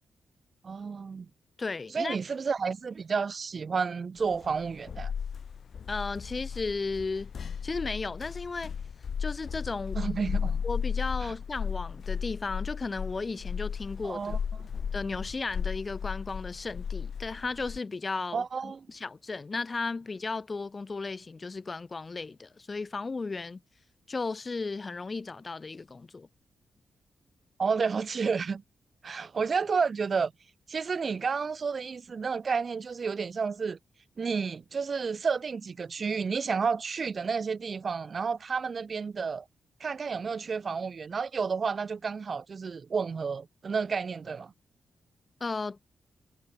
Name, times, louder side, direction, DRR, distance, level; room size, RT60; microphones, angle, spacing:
voice 1, 0.6-1.3 1.9-5.1 10.0-10.6 11.2-11.3 14.0-14.4 18.3-18.9 27.6-28.6 29.0-30.3 30.7-33.8 34.2-39.4 39.8-44.5, right 5 dB, 40° right, 5.8 m, -31 dB
voice 2, 1.6-2.2 5.9-7.3 7.6-8.7 9.2-10.0 10.6-14.4 14.9-23.6 24.1-26.3 45.4-45.8, left 4 dB, 30° left, 2.6 m, -35 dB
sound 1, 4.3-17.8, left 7 dB, 55° left, 2.2 m, -35 dB
wide cardioid pair, 140°, 0 cm